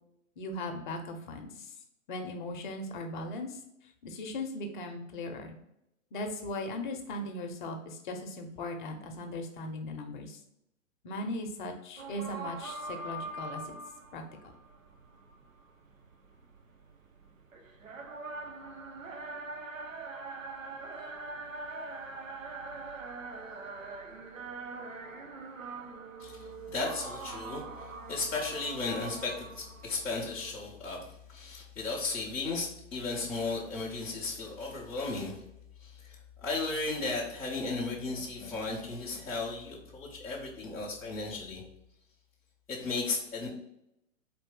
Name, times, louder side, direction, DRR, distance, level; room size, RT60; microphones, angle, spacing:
voice 1, 0.4-1.7 2.1-3.6 4.0-5.6 6.1-10.4 11.0-13.7 14.1-14.2, left 1 dB, 40° left, 4 dB, 0.7 m, -38 dB
sound 1, 12.0-30.6, right 3 dB, 80° right, 0.7 m, -43 dB
voice 2, 26.2-35.4 35.8-41.6 42.7-43.5, left 3 dB, 5° left, -7 dB, 0.4 m, -35 dB
4.1 x 2.7 x 3.6 m, 0.81 s
figure-of-eight pair, 115°, 39 cm